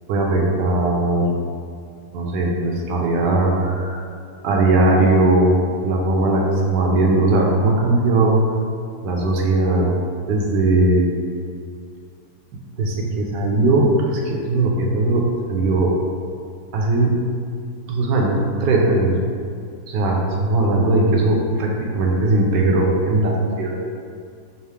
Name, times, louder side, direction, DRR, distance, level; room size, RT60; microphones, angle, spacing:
voice 1, 0.1-1.3 2.1-4.0 4.4-5.6 5.8-8.4 9.0-9.9 10.3-11.1 12.8-15.9 16.7-17.1 17.9-19.2 19.9-23.8, right 2 dB, 75° right, -1 dB, 1.2 m, -19 dB
5.4 x 2.0 x 3.4 m, 2.2 s
omnidirectional pair, 2.0 m